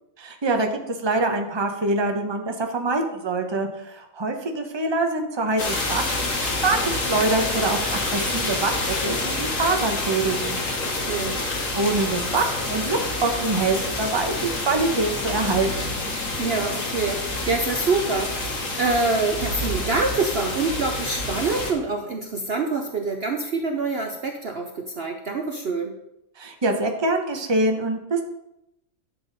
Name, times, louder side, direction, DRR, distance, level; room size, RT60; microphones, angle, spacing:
voice 1, 0.2-10.6 11.7-15.7 26.4-28.2, right 2 dB, 20° right, 4 dB, 0.9 m, -25 dB
sound 1, 5.6-21.7, left 2 dB, 65° left, 2.1 m, -27 dB
voice 2, 10.8-11.4 16.4-25.9, right 3 dB, 50° right, 4 dB, 0.9 m, -26 dB
11.0 x 7.1 x 4.0 m, 0.83 s
omnidirectional pair, 1.5 m